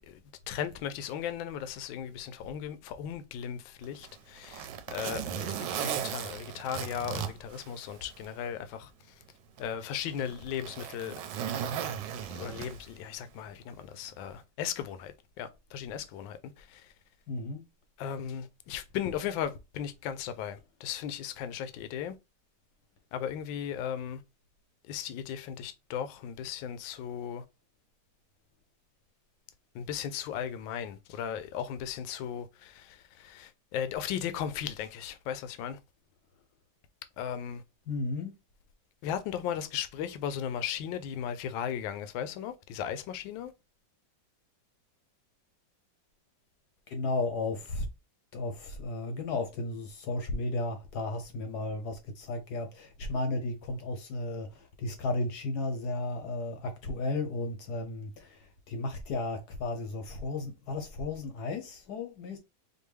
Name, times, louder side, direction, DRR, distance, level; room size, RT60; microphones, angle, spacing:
voice 1, 0.5-9.1 9.6-11.2 12.3-16.9 18.0-22.1 23.1-24.2 24.9-27.4 29.7-35.8 37.2-37.6 39.0-43.5, left 9 dB, 80° left, 1.3 m, -36 dB
Zipper (clothing), 3.8-8.3 8.7-8.8 9.6-13.0 14.2-14.4, right 8 dB, 75° right, 1.2 m, -36 dB
voice 2, 17.3-17.6 37.9-38.3 46.9-47.9 48.3-62.4, left 2 dB, 65° left, 1.1 m, -34 dB
4.5 x 2.6 x 3.2 m
omnidirectional pair, 2.1 m